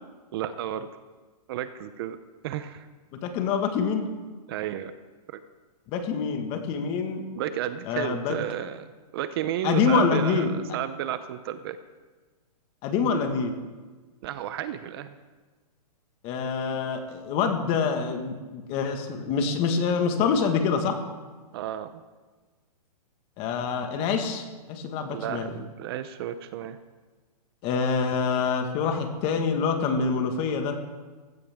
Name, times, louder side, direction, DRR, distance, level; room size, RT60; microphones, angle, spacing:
voice 1, 0.3-0.9 1.5-2.2 2.4-2.9 4.5-4.9 7.3-8.9 9.1-11.8 14.2-15.1 21.5-22.0 25.1-26.8, right 11 dB, 40° right, 12 dB, 0.7 m, -32 dB
voice 2, 3.1-4.1 5.9-7.3 7.8-8.4 9.6-10.5 12.8-13.5 16.2-21.0 23.4-25.5 27.6-30.8, left 5 dB, 30° left, 6 dB, 1.7 m, -26 dB
18.0 x 16.0 x 3.6 m, 1.3 s
hypercardioid pair, 155°, 20 cm